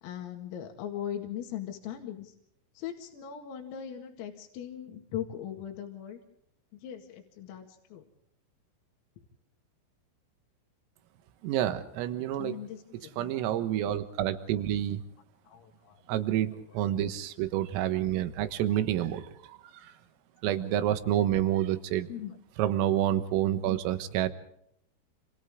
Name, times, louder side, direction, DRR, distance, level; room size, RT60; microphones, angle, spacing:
voice 1, 0.0-2.3 2.8-6.2 6.8-8.0 12.4-13.3 15.5-16.0 22.1-22.4, left 10 dB, 85° left, 3 dB, 4.7 m, -39 dB
voice 2, 11.4-12.6 13.2-15.0 16.1-19.9 20.4-22.1 22.6-24.3, right 12 dB, 85° right, 9 dB, 4.0 m, -28 dB
29.0 x 28.0 x 3.7 m, 0.71 s
omnidirectional pair, 5.8 m